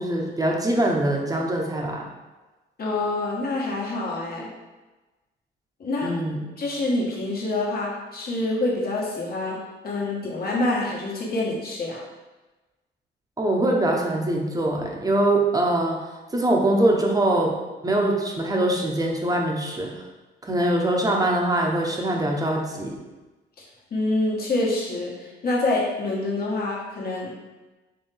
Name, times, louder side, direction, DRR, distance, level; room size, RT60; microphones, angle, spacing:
voice 1, 0.0-2.0 6.0-6.4 13.4-16.0 16.3-17.6 17.8-19.9 20.4-23.0, right 1 dB, 20° right, 0 dB, 0.9 m, -23 dB
voice 2, 2.8-4.5 5.8-6.1 6.6-9.6 9.8-12.0 23.9-27.3, left 2 dB, 50° left, -4 dB, 1.4 m, -26 dB
4.5 x 3.3 x 3.4 m, 1.2 s
cardioid pair, 90°, 20 cm